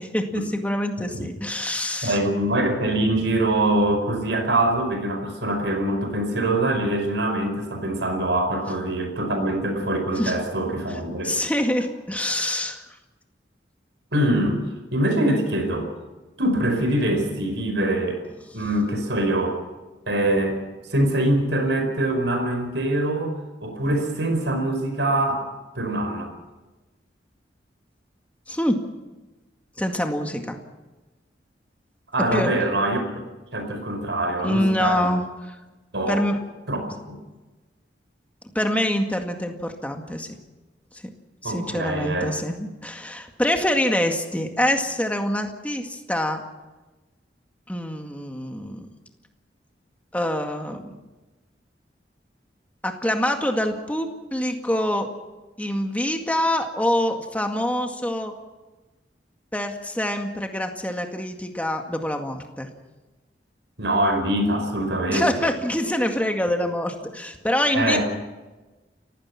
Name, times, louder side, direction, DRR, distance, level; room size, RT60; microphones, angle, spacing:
voice 1, 0.0-2.2 9.2-9.3 10.2-10.3 11.2-12.8 28.5-28.9 29.8-30.6 32.3-32.5 34.4-35.6 36.1-36.4 38.5-40.3 41.4-46.4 47.7-48.9 50.1-51.0 52.8-55.1 55.6-58.3 59.5-62.7 65.1-68.0, left 1 dB, 10° left, 4 dB, 2.0 m, -25 dB
voice 2, 2.0-11.3 14.1-14.6 14.9-15.9 16.4-18.2 18.5-19.6 20.1-20.6 20.9-23.3 23.6-25.5 25.7-26.3 32.1-33.0 33.5-35.1 35.9-36.2 36.7-36.8 37.1-37.2 41.4-42.4 63.8-65.3 67.7-68.0, right 1 dB, 80° right, 5 dB, 5.1 m, -23 dB
29.5 x 16.0 x 5.9 m, 1.2 s
head